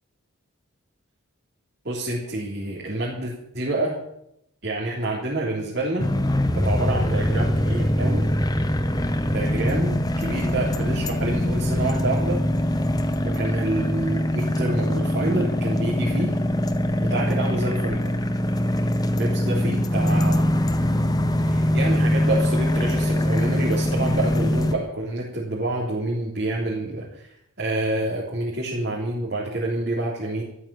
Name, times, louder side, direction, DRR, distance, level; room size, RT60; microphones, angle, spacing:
voice 1, 1.8-4.0 4.6-6.1 6.5-8.3 9.3-12.4 13.2-16.3 17.1-18.1 19.2-20.5 21.5-30.4, right 2 dB, 50° right, -4 dB, 3.5 m, -28 dB
sound 1, 6.0-24.8, left 1 dB, 15° left, 0.9 m, -23 dB
14.0 x 11.5 x 7.1 m, 0.77 s
head